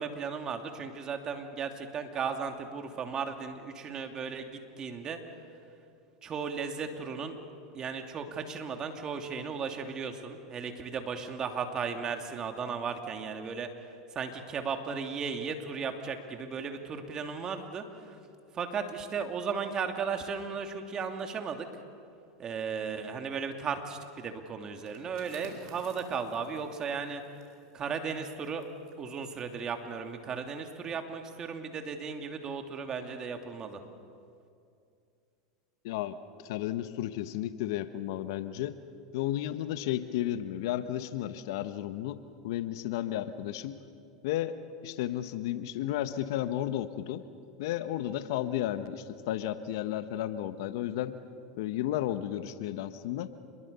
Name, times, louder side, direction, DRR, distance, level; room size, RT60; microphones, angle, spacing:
voice 1, 0.0-5.2 6.2-7.4 7.7-18.2 18.5-21.7 22.4-27.2 27.7-28.6 29.0-33.8, right 5 dB, 35° right, 5 dB, 2.7 m, -36 dB
sound 1, 24.7-30.2 30.6-30.8, right 4 dB, 75° right, 5.3 m, -55 dB
voice 2, 35.8-36.2 36.4-38.7 39.1-43.8 44.2-44.5 44.8-47.2 47.6-51.2 51.6-53.3, left 12 dB, 70° left, 12 dB, 1.1 m, -33 dB
27.5 x 22.0 x 6.9 m, 2.5 s
hypercardioid pair, 100°, 2 cm